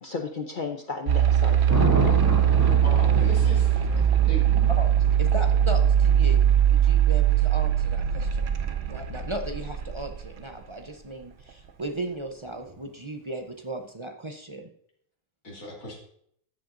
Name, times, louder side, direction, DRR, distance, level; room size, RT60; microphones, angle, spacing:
voice 1, 0.0-2.8 3.6-4.2, left 4 dB, 50° left, 5 dB, 0.7 m, -37 dB
sound 1, 1.1-10.2, right 10 dB, 60° right, 0.9 m, -21 dB
Thunder, 1.7-9.7 12.5-12.8, right 1 dB, 15° right, 2.2 m, -33 dB
voice 2, 2.8-3.8 4.3-4.5 15.4-16.0, equal, 80° left, -4 dB, 2.6 m, -36 dB
voice 3, 5.2-8.6 8.9-14.7, right 1 dB, 30° right, 4 dB, 0.6 m, -36 dB
13.5 x 7.6 x 2.6 m, 0.67 s
omnidirectional pair, 1.4 m